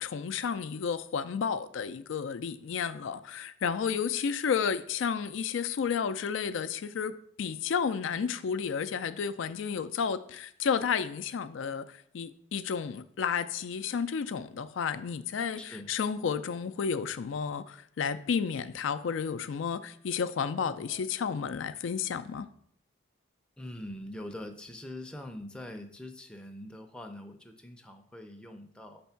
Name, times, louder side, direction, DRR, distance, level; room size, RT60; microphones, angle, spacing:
voice 1, 0.0-22.5, left 6 dB, 80° left, 0.4 m, -32 dB
voice 2, 15.6-15.9 20.5-21.1 23.6-29.0, left 1 dB, 5° left, 0.4 m, -44 dB
6.2 x 3.4 x 5.7 m
head